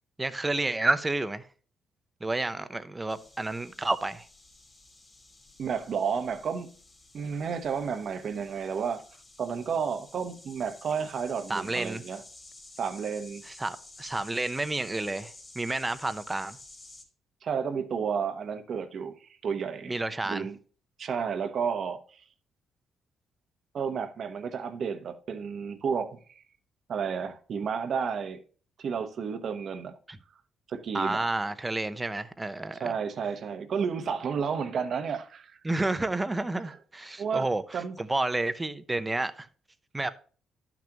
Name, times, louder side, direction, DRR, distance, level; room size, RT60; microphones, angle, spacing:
voice 1, 0.2-1.4 2.2-4.3 11.5-12.0 13.5-16.6 19.9-20.5 30.1-30.2 30.9-32.9 35.6-39.5 39.9-40.1, right 2 dB, 15° right, 0.7 m, -30 dB
sound 1, 3.1-17.0, left 2 dB, 25° left, 2.7 m, -52 dB
voice 2, 5.6-6.7 7.1-9.0 9.4-12.2 12.8-13.4 17.4-19.1 19.4-20.0 20.2-20.6 21.0-22.2 23.7-26.2 26.9-28.4 28.8-30.0 30.7-31.3 32.8-35.5 37.2-37.5 37.7-38.0, right 6 dB, 55° right, 0.9 m, -31 dB
11.5 x 6.1 x 2.9 m
cardioid pair, 90°, 0 cm